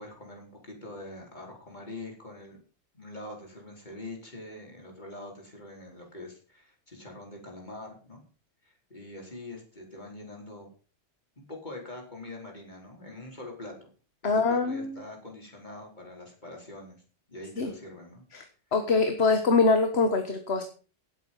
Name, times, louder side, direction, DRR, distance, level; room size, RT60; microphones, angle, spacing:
voice 1, 0.0-2.6 2.9-8.2 8.6-10.7 11.4-13.9 14.3-17.0 17.3-18.2, left 2 dB, 35° left, 0 dB, 4.7 m, -44 dB
voice 2, 14.2-15.0 17.6-17.7 18.3-18.4 18.7-20.6, left 4 dB, 55° left, 6 dB, 1.7 m, -24 dB
17.5 x 8.1 x 5.6 m, 0.40 s
omnidirectional pair, 1.3 m